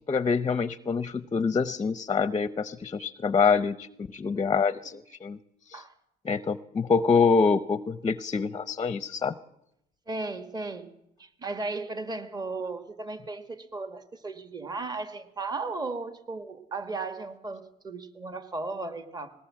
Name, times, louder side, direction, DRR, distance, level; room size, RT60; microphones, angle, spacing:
voice 1, 0.1-5.4 5.7-5.8 6.2-9.3, left 5 dB, 25° left, 14 dB, 0.7 m, -26 dB
voice 2, 10.1-10.9 11.2-19.3, right 3 dB, 25° right, 9 dB, 1.7 m, -35 dB
20.0 x 18.0 x 7.5 m, 0.83 s
cardioid pair, 110°, 17 cm